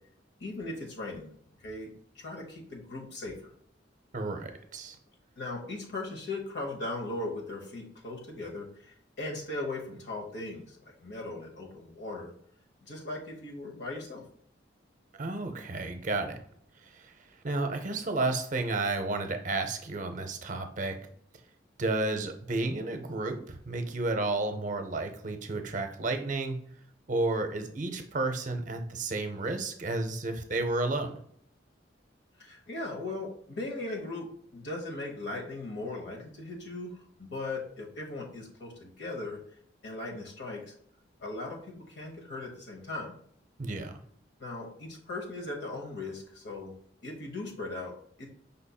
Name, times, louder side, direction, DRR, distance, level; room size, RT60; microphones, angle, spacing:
voice 1, 0.4-1.3 1.6-3.4 5.4-12.3 12.8-14.2 32.4-36.9 37.2-39.4 39.8-40.7 41.2-43.1 44.4-46.7 47.0-48.3, left 2 dB, 65° left, 0 dB, 1.0 m, -38 dB
voice 2, 4.1-5.0 15.2-16.4 16.8-17.1 17.4-21.0 21.8-26.6 27.1-31.2 43.6-43.9, right 2 dB, 40° right, 7 dB, 0.6 m, -32 dB
5.3 x 4.1 x 2.3 m, 0.66 s
head